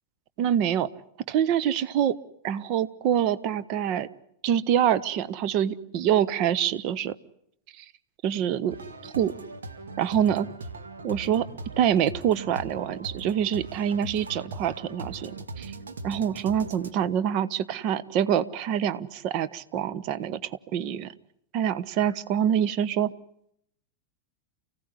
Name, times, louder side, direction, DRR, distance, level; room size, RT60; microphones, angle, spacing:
voice 1, 0.4-0.9 1.3-2.2 2.4-4.1 4.4-7.1 7.8-7.9 8.2-8.8 9.0-9.3 10.0-10.5 11.0-11.5 11.8-15.7 16.0-21.1 21.5-23.1, right 9 dB, 40° right, 15 dB, 1.1 m, -25 dB
sound 1, 8.7-16.9, right 3 dB, 70° right, 2.3 m, -40 dB
29.5 x 16.5 x 10.0 m, 0.74 s
figure-of-eight pair, 90°, 0 cm